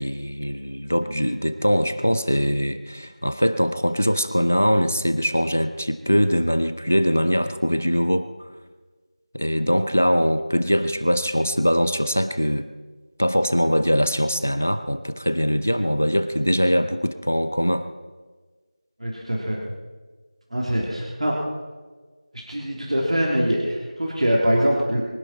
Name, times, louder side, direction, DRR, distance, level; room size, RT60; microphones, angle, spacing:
voice 1, 0.0-8.5 9.3-12.7 13.2-17.9, equal, 15° left, 11 dB, 0.4 m, -22 dB
voice 2, 19.0-19.6 20.5-21.3 22.3-25.0, equal, 60° right, -2 dB, 3.3 m, -23 dB
24.0 x 11.0 x 4.4 m, 1.4 s
figure-of-eight pair, 180°, 4 cm